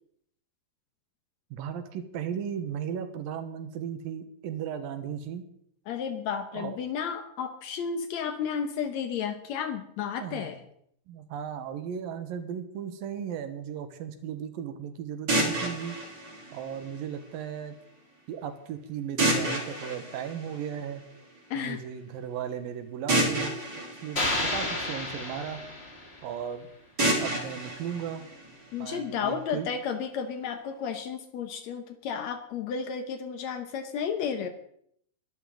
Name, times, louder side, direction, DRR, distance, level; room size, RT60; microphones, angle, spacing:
voice 1, 1.5-5.4 6.5-6.8 10.2-10.6 11.1-16.0 16.5-17.7 18.3-21.0 21.6-23.5 24.0-25.7 26.2-26.7 27.2-28.3 28.8-29.7, right 8 dB, 65° right, 8 dB, 2.8 m, -36 dB
voice 2, 5.9-10.6 21.5-21.8 28.7-34.5, left 7 dB, 85° left, 7 dB, 1.5 m, -32 dB
sound 1, 15.3-17.3 19.2-21.2 23.1-25.3 27.0-29.0, right 1 dB, 25° right, 4.1 m, -30 dB
sound 2, 24.2-26.3, left 2 dB, 25° left, 1.5 m, -31 dB
23.0 x 12.0 x 3.9 m, 0.69 s
omnidirectional pair, 4.8 m